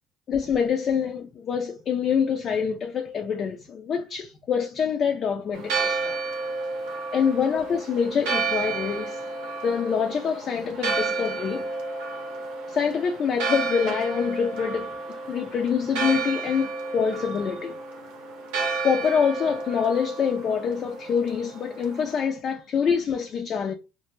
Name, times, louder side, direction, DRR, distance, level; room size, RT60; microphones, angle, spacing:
voice 1, 0.3-6.1 7.1-9.2 9.6-11.7 12.7-15.0 15.3-17.7 18.8-23.7, left 6 dB, 45° left, 0.4 m, -25 dB
Church bell, 5.5-22.2, right 4 dB, 80° right, 0.7 m, -31 dB
2.1 x 2.1 x 3.0 m
supercardioid pair, 95°, 0 cm